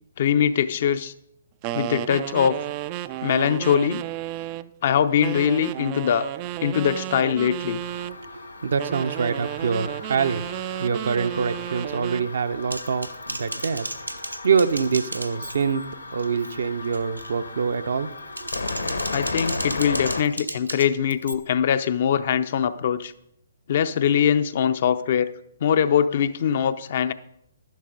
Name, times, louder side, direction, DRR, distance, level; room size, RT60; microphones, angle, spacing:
voice 1, 0.2-1.1 1.7-2.6 3.2-4.0 4.8-6.3 6.6-7.8 19.1-23.1 23.7-25.3 25.6-27.1, left 8 dB, 45° left, 0.5 m, -22 dB
sound 1, 1.6-4.7 5.2-8.2 8.8-12.3, right 14 dB, 30° right, 0.3 m, -32 dB
sound 2, 7.8-20.2, left 3 dB, 75° left, 1.2 m, -35 dB
voice 2, 8.2-10.5 10.8-13.9 14.4-15.8 16.1-18.1 18.4-18.5, right 6 dB, 55° right, 0.7 m, -25 dB
Typing, 12.7-15.9 16.2-16.6 16.9-17.3 18.1-21.3, right 1 dB, 90° right, 0.7 m, -34 dB
12.0 x 10.5 x 3.8 m
figure-of-eight pair, 130°, 0 cm